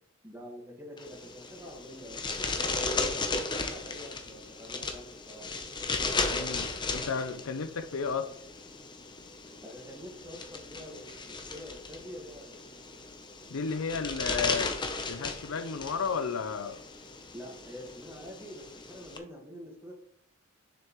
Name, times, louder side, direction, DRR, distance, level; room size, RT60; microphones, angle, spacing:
voice 1, 0.2-5.5 9.6-12.6 17.3-19.9, equal, 10° right, 1.6 m, -46 dB
sound 1, 1.0-19.2, left 3 dB, 20° left, 0.7 m, -36 dB
voice 2, 6.3-8.3 13.5-14.7 15.1-16.8, left 5 dB, 75° left, 0.6 m, -33 dB
6.9 x 6.5 x 3.1 m
head